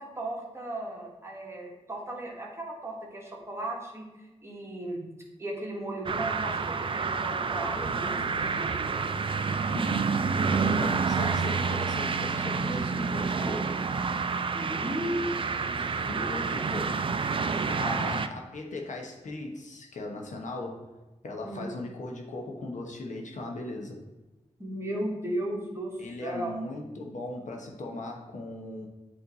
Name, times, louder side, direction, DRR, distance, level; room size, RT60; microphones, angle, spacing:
voice 1, 0.0-5.0 5.4-8.8 14.5-15.3 15.7-16.2 16.5-16.6 17.9-18.1 21.4-21.7 24.6-26.5, right 1 dB, 20° right, -2 dB, 1.5 m, -36 dB
sound 1, 6.1-18.3, right 5 dB, 45° right, 0.4 m, -29 dB
voice 2, 9.7-13.8 16.1-17.2 17.7-20.9 21.2-24.0 26.0-28.9, left 2 dB, 80° left, 1 dB, 1.0 m, -38 dB
8.2 x 3.3 x 4.0 m, 1.1 s
wide cardioid pair, 90°, 12 cm